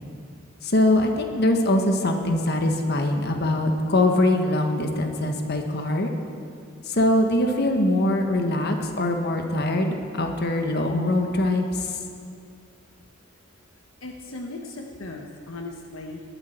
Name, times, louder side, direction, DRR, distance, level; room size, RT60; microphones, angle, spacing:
voice 1, 0.6-6.1 6.9-12.0, left 1 dB, 55° left, 4 dB, 1.4 m, -22 dB
voice 2, 14.0-16.2, left 2 dB, 80° left, 2 dB, 1.1 m, -37 dB
19.5 x 13.0 x 4.5 m, 2.4 s
head